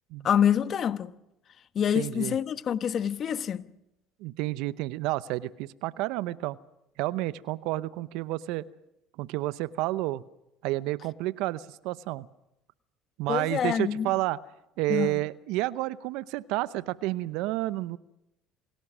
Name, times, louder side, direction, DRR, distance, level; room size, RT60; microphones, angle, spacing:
voice 1, 0.2-1.1 1.7-3.6 13.3-14.1 14.9-15.1, left 8 dB, 50° left, 1.1 m, -26 dB
voice 2, 1.9-2.4 4.2-6.6 7.0-8.6 9.2-10.2 10.6-12.3 13.2-14.4 14.8-18.0, right 17 dB, 75° right, 0.7 m, -30 dB
27.5 x 17.5 x 6.2 m
hypercardioid pair, 75°, 0 cm